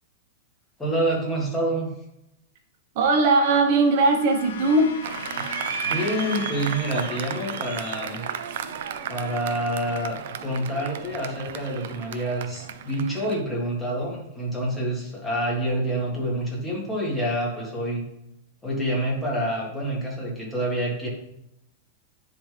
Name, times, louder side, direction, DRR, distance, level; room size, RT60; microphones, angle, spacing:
voice 1, 0.8-1.9 5.8-8.3 9.1-18.1 18.6-21.1, right 1 dB, 5° left, -4 dB, 1.7 m, -27 dB
voice 2, 2.9-4.9, right 3 dB, 45° right, 4 dB, 1.1 m, -19 dB
sound 1, 3.4-11.9, left 5 dB, 80° left, 1.1 m, -40 dB
Applause, 5.0-13.4, right 9 dB, 65° right, 0.5 m, -34 dB
10.0 x 3.6 x 3.4 m, 0.82 s
supercardioid pair, 170°, 0 cm